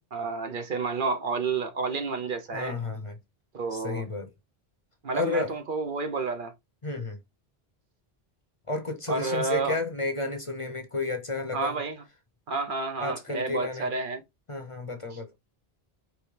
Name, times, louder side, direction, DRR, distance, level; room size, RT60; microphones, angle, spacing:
voice 1, 0.0-2.8 3.5-4.1 5.0-6.5 9.1-9.8 11.5-12.0 12.5-14.2 15.1-15.2, right 4 dB, 60° right, 0.9 m, -30 dB
voice 2, 2.5-3.2 3.7-4.3 5.1-5.5 6.8-7.2 8.7-11.8 13.0-13.9 14.5-15.3, left 3 dB, 35° left, 0.7 m, -32 dB
5.0 x 3.1 x 3.2 m
omnidirectional pair, 1.0 m